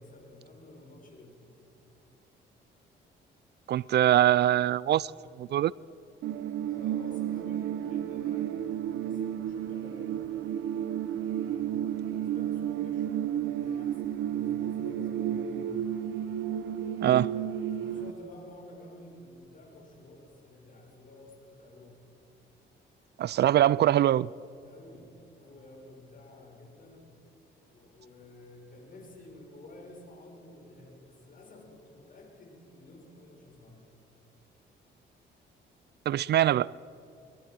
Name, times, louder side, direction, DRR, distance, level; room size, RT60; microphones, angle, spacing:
voice 1, 0.0-1.5 6.6-10.6 11.3-16.3 16.7-17.2 17.6-22.0 24.6-27.2 27.7-33.9, left 1 dB, 45° left, 6.5 m, -51 dB
voice 2, 3.7-5.1 5.4-5.7 17.0-17.3 23.2-24.3 36.1-36.7, right 12 dB, 60° right, 0.4 m, -23 dB
sound 1, 6.2-18.1, right 10 dB, 80° right, 0.9 m, -32 dB
22.5 x 21.0 x 6.1 m
cardioid pair, 90°, 20 cm